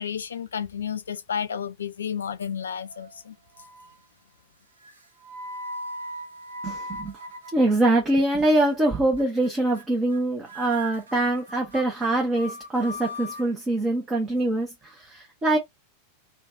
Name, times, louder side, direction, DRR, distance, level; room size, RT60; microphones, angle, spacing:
voice 1, 0.0-3.3, left 7 dB, 70° left, 0.4 m, -31 dB
sound 1, 2.6-3.2 3.5-4.1 4.8-8.1 8.4-8.8 9.2-9.5 9.7-9.8 10.1-10.2 10.5-13.5, equal, 70° right, 0.9 m, -39 dB
voice 2, 6.6-7.2 7.5-15.6, right 2 dB, 15° right, 1.0 m, -24 dB
3.1 x 2.4 x 2.6 m
figure-of-eight pair, 90°, 0 cm